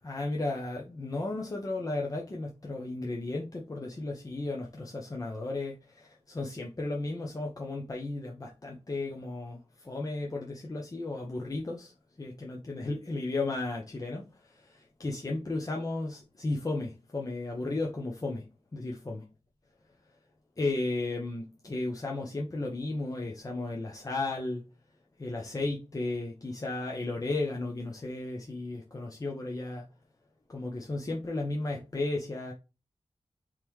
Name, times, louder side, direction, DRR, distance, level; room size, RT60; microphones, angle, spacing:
voice 1, 0.0-19.2 20.1-20.2 20.6-24.6 25.2-29.9 30.5-32.5, left 2 dB, 30° left, 0.8 m, -34 dB
4.6 x 3.7 x 3.1 m
wide cardioid pair, 95°, 11 cm